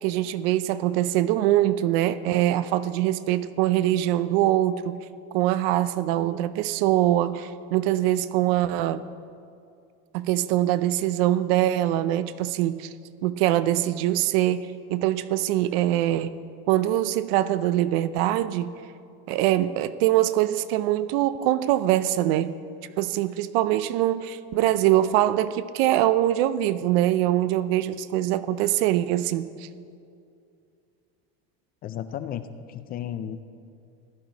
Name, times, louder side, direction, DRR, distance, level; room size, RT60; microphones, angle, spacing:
voice 1, 0.0-5.0 5.3-9.0 10.1-12.9 13.2-16.3 16.7-18.7 19.3-22.5 23.0-29.7, right 13 dB, 70° right, 14 dB, 0.6 m, -23 dB
voice 2, 31.8-33.4, left 9 dB, 30° left, 12 dB, 0.4 m, -34 dB
15.0 x 10.5 x 4.0 m, 2.4 s
supercardioid pair, 145°, 30 cm